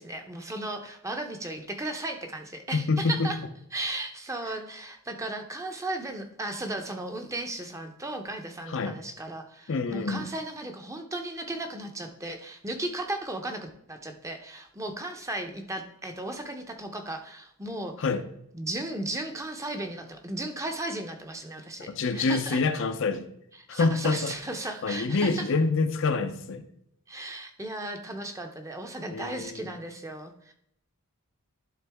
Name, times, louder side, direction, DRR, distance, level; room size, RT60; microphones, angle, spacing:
voice 1, 0.0-3.4 3.7-17.9 18.5-22.6 23.7-25.5 27.1-30.5, right 1 dB, 15° right, 4 dB, 0.7 m, -35 dB
voice 2, 2.7-3.3 8.7-8.9 9.7-10.3 18.0-18.2 21.9-23.3 23.7-24.3 24.8-26.6 29.1-29.7, left 4 dB, 60° left, 8 dB, 0.6 m, -26 dB
11.5 x 3.9 x 3.5 m, 0.73 s
head